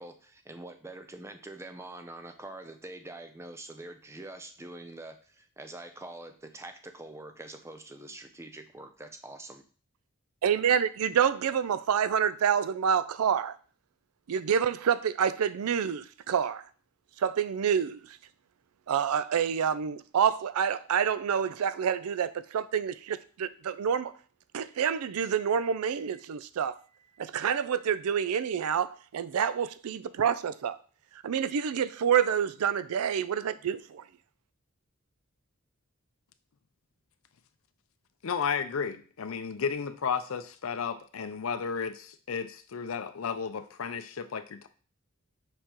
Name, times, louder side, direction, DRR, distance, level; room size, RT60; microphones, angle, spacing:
voice 1, 0.0-9.6, right 2 dB, 10° right, 0.5 m, -45 dB
voice 2, 10.4-13.6 14.3-16.6 17.2-18.2 18.9-24.1 24.5-26.8 27.2-30.8 31.2-34.0, right 8 dB, 90° right, 0.4 m, -28 dB
voice 3, 38.2-44.7, left 6 dB, 70° left, 0.5 m, -33 dB
6.5 x 5.2 x 3.0 m
head